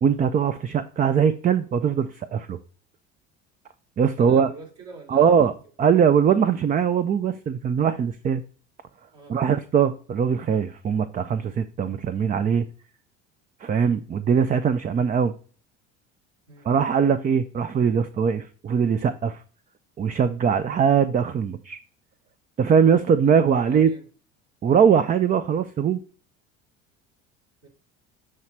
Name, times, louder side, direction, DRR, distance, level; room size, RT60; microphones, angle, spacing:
voice 1, 0.0-2.6 4.0-4.5 5.1-5.5 5.8-8.4 9.3-12.6 13.6-15.3 16.6-19.4 20.0-21.8 22.6-23.9 24.6-26.0, right 7 dB, 25° right, 11 dB, 0.4 m, -21 dB
voice 2, 4.2-5.5 9.1-9.4 16.5-16.7 23.5-24.1 27.6-27.7, right 3 dB, 60° right, -2 dB, 3.1 m, -44 dB
7.4 x 3.2 x 4.4 m, 0.40 s
hypercardioid pair, 75°, 34 cm